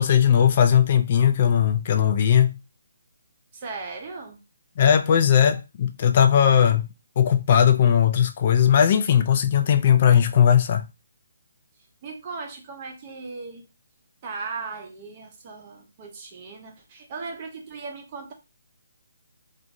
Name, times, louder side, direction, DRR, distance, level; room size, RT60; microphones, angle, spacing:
voice 1, 0.0-2.5 4.8-6.9 7.2-10.8, left 8 dB, 30° left, 0.3 m, -18 dB
voice 2, 3.5-4.4 12.0-13.7 14.2-18.3, right 4 dB, 25° right, 0.6 m, -37 dB
2.9 x 2.4 x 2.5 m
hypercardioid pair, 175°, 0 cm